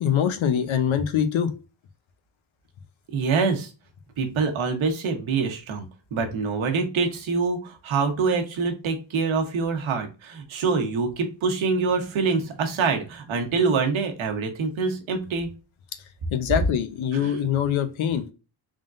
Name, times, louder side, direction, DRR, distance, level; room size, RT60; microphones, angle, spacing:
voice 1, 0.0-1.5 16.3-18.2, left 8 dB, 80° left, 9 dB, 0.8 m, -23 dB
voice 2, 3.1-3.7 4.2-5.9 6.1-15.5 17.1-17.4, right 4 dB, 80° right, 5 dB, 1.2 m, -25 dB
3.7 x 3.5 x 2.5 m, 0.31 s
cardioid pair, 125°, 46 cm